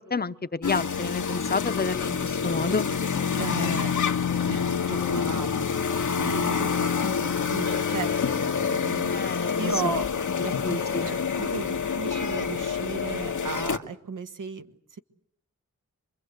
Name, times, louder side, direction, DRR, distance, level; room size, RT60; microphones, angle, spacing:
voice 1, 0.0-2.9 7.0-7.2 9.1-9.9 10.3-10.4 10.6-11.1, left 4 dB, 30° left, 11 dB, 0.9 m, -30 dB
sound 1, 0.6-13.8, left 6 dB, 75° left, 1.5 m, -27 dB
voice 2, 3.4-4.1 4.5-8.3 8.5-9.2 9.6-10.1 10.4-15.0, right 5 dB, 85° right, 9 dB, 1.5 m, -36 dB
25.5 x 23.0 x 8.1 m, 0.69 s
wide cardioid pair, 80°, 31 cm